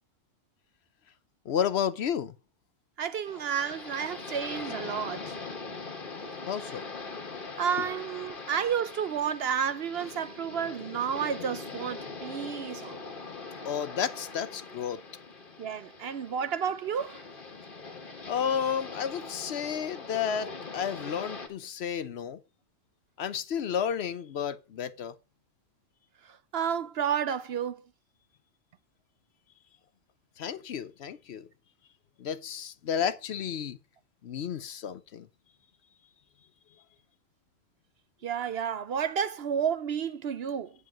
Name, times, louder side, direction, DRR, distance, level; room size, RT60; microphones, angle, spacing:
voice 1, 1.5-2.3 6.5-6.8 13.7-15.0 18.3-22.4 23.2-25.1 30.4-31.5 32.2-33.8 34.2-35.3, left 8 dB, 65° left, 0.9 m, -32 dB
voice 2, 3.0-5.4 7.6-13.1 15.6-17.2 26.5-27.8 38.2-40.7, right 8 dB, 60° right, 0.8 m, -31 dB
sound 1, 3.3-21.5, left 4 dB, 45° left, 1.6 m, -42 dB
9.5 x 4.8 x 5.9 m
omnidirectional pair, 1.3 m